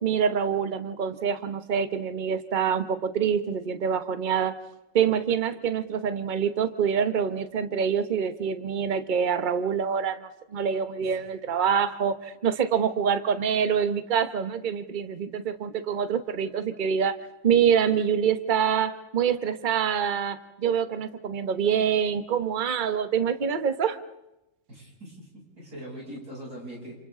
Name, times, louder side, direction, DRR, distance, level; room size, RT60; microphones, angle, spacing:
voice 1, 0.0-4.5 4.9-17.1 17.4-24.0, right 7 dB, 35° right, 10 dB, 1.0 m, -26 dB
voice 2, 24.7-27.0, right 1 dB, 55° right, -3 dB, 8.4 m, -42 dB
29.0 x 28.5 x 3.8 m, 0.93 s
omnidirectional pair, 2.0 m